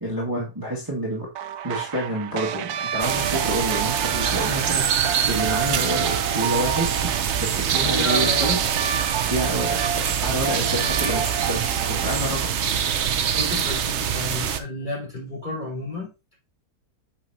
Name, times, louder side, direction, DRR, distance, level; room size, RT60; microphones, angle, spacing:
voice 1, 0.0-1.3 1.6-7.1 7.4-8.6 9.2-9.8 10.2-12.5, equal, 15° right, -5 dB, 1.9 m, -28 dB
sound 1, 1.4-12.1, right 9 dB, 80° right, 1.1 m, -30 dB
sound 2, 3.0-14.6, right 8 dB, 55° right, 0.9 m, -24 dB
voice 2, 7.8-8.9 10.8-11.5 13.3-16.1, left 1 dB, 25° left, -4 dB, 4.4 m, -32 dB
8.5 x 5.8 x 2.8 m, 0.27 s
omnidirectional pair, 1.7 m